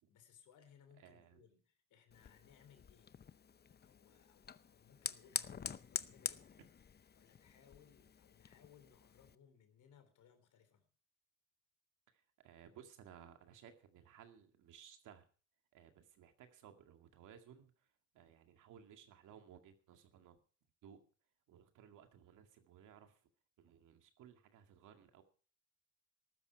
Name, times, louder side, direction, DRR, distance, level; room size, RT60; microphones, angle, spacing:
voice 1, 0.1-3.1 3.8-6.5 7.1-10.9, left 8 dB, 80° left, 9 dB, 3.4 m, -66 dB
voice 2, 1.0-1.4 12.1-15.3 15.7-20.4 20.8-21.0 21.5-23.3 23.6-25.2, right 9 dB, 85° right, 6 dB, 2.2 m, -60 dB
Fire, 2.1-9.4, left 7 dB, 35° left, 0.7 m, -47 dB
14.5 x 12.5 x 4.7 m, 0.40 s
cardioid pair, 90°, 30 cm